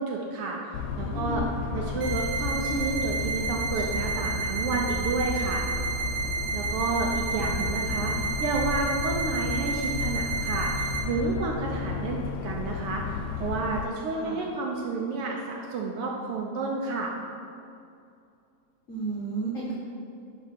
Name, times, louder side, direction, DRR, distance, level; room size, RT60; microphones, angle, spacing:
voice 1, 0.0-1.4 1.7-5.7 6.5-17.1, right 3 dB, 75° right, -1 dB, 1.3 m, -30 dB
sound 1, 0.7-13.9, left 5 dB, 80° left, 1.8 m, -33 dB
voice 2, 1.0-1.4 1.7-1.9 14.1-14.4 18.9-19.7, right 3 dB, 55° left, -5 dB, 0.8 m, -33 dB
sound 2, 2.0-11.0, right 5 dB, 60° right, 2.0 m, -32 dB
10.5 x 4.1 x 5.8 m, 2.5 s
omnidirectional pair, 3.4 m